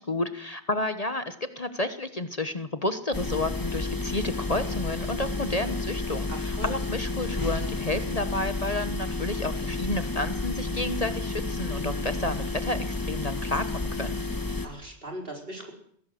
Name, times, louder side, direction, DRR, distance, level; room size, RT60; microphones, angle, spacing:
voice 1, 0.0-14.2, left 2 dB, 35° left, 10 dB, 1.2 m, -31 dB
sound 1, 3.1-14.7, left 3 dB, 20° left, 1.8 m, -31 dB
voice 2, 6.3-6.7 14.6-15.7, equal, 55° right, 2 dB, 4.9 m, -39 dB
21.0 x 17.0 x 7.8 m, 0.64 s
omnidirectional pair, 1.1 m